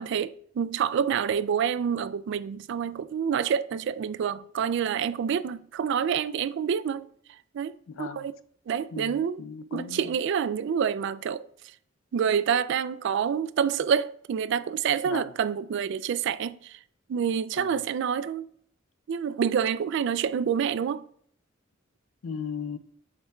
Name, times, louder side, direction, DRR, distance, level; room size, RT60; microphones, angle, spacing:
voice 1, 0.0-7.1 7.5-8.3 8.7-9.4 9.7-11.5 12.1-16.8 17.1-18.5 19.1-21.0, right 7 dB, 65° right, 0.3 m, -27 dB
voice 2, 7.9-8.3 8.9-10.0 15.0-15.3 17.6-17.8 22.2-22.8, left 6 dB, 90° left, 0.4 m, -37 dB
8.1 x 5.4 x 2.3 m
head